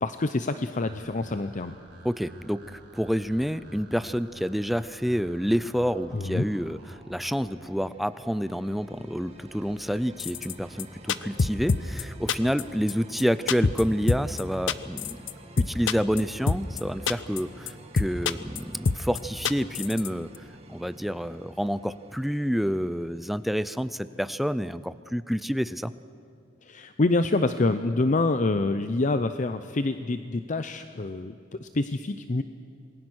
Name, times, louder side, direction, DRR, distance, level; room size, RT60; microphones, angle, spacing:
voice 1, 0.0-1.8 6.1-6.5 26.6-32.4, left 2 dB, 40° left, 10 dB, 0.6 m, -26 dB
sound 1, 0.8-7.7, right 1 dB, 60° right, 6.8 m, -49 dB
voice 2, 2.0-6.8 7.1-15.2 15.6-20.3 20.7-25.9, equal, ahead, 14 dB, 0.5 m, -28 dB
sound 2, 7.2-25.0, right 1 dB, 35° right, 2.2 m, -48 dB
sound 3, 10.2-10.5 10.8-10.9 11.1-12.0 12.3-12.6 12.9-13.0 13.2-13.3 13.5-13.8 14.1-14.4 14.7-15.3 15.6-16.2 16.5-16.8 17.1-17.4 17.7-17.8 18.0-18.6 18.9-19.2 19.4-20.1 20.3-20.4, left 4 dB, 80° left, 0.7 m, -25 dB
27.0 x 20.5 x 6.3 m, 2.4 s
head